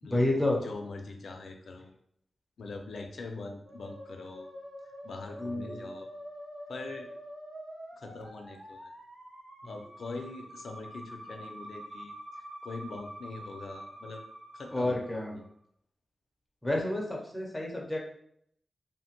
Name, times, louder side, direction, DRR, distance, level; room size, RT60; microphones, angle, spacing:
voice 1, 0.0-0.6 5.4-5.9 14.7-15.4 16.6-18.0, left 1 dB, 10° left, -1 dB, 0.6 m, -30 dB
voice 2, 0.6-1.9 2.6-4.5 5.0-6.1 6.7-7.1 8.0-8.9 9.6-12.2 12.6-14.2 14.5-15.0 15.2-15.4, left 3 dB, 75° left, 4 dB, 0.4 m, -42 dB
Musical instrument, 3.6-15.4, equal, 75° right, 1.0 m, -46 dB
2.8 x 2.1 x 2.9 m, 0.68 s
wide cardioid pair, 170°, 0 cm